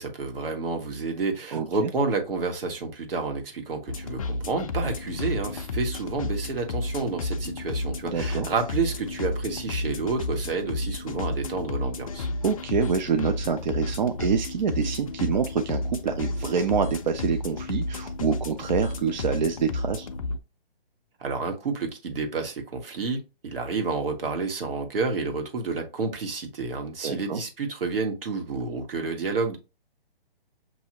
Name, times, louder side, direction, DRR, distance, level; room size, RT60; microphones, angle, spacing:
voice 1, 0.0-12.3 21.2-29.6, right 4 dB, 65° right, 1.4 m, -30 dB
voice 2, 1.5-1.9 8.1-8.5 12.4-20.1 27.0-27.4, right 6 dB, 50° right, 0.5 m, -26 dB
sound 1, 3.9-20.4, left 2 dB, 35° left, 0.4 m, -31 dB
6.4 x 2.7 x 2.8 m
hypercardioid pair, 155°, 30 cm